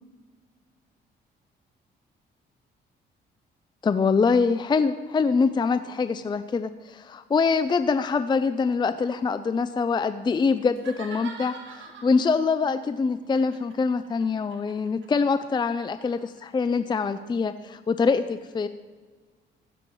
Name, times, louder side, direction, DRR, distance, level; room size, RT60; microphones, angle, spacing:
voice 1, 3.8-11.6 12.0-18.7, left 5 dB, 25° left, 12 dB, 0.4 m, -24 dB
sound 1, 10.7-12.5 13.3-16.4, right 5 dB, 70° right, 1.8 m, -43 dB
15.5 x 7.1 x 4.6 m, 1.5 s
cardioid pair, 90°, 20 cm